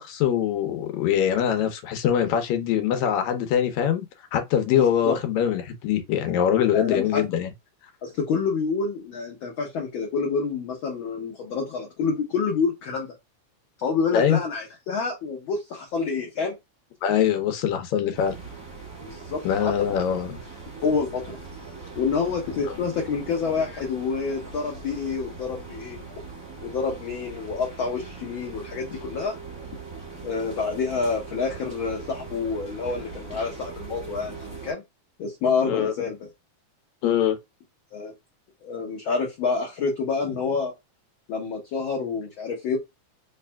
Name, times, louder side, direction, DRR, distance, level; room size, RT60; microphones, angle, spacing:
voice 1, 0.0-4.0 4.3-7.5 14.1-14.4 17.0-18.4 19.4-20.4 35.6-35.9 37.0-37.4, left 9 dB, 75° left, 2.0 m, -23 dB
voice 2, 4.7-5.2 6.7-7.3 8.0-13.1 13.8-16.5 19.0-19.7 20.8-21.4 21.9-26.0 26.6-29.3 30.2-34.8 35.2-36.3 37.9-38.1 38.6-40.7 41.3-42.8, left 5 dB, 60° left, 1.4 m, -28 dB
sound 1, 18.1-34.7, right 4 dB, 15° right, 1.0 m, -40 dB
4.3 x 3.3 x 2.2 m
omnidirectional pair, 3.4 m